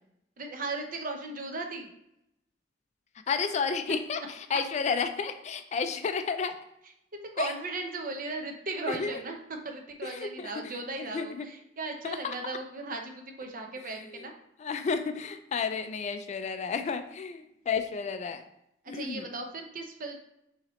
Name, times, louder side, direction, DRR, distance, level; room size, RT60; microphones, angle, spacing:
voice 1, 0.4-1.9 7.3-9.4 9.6-14.3 18.9-20.1, right 3 dB, 50° right, 4 dB, 0.7 m, -37 dB
voice 2, 3.3-6.5 7.4-7.5 8.9-9.2 10.0-11.5 12.0-12.4 13.8-14.3 14.6-18.4 18.9-19.3, left 5 dB, 40° left, 9 dB, 0.3 m, -32 dB
5.8 x 2.9 x 3.0 m, 0.80 s
head